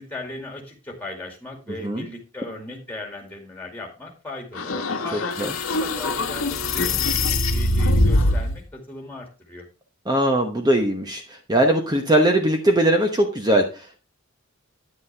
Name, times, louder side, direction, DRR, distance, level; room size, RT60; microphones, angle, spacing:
voice 1, 0.0-4.7 5.0-9.6, left 2 dB, 10° left, 2 dB, 2.3 m, -37 dB
sound 1, 4.5-8.6, left 2 dB, 75° left, 1.3 m, -22 dB
voice 2, 5.1-5.5 10.1-14.0, right 1 dB, 20° right, 4 dB, 1.0 m, -20 dB
9.8 x 8.3 x 3.4 m, 0.29 s
head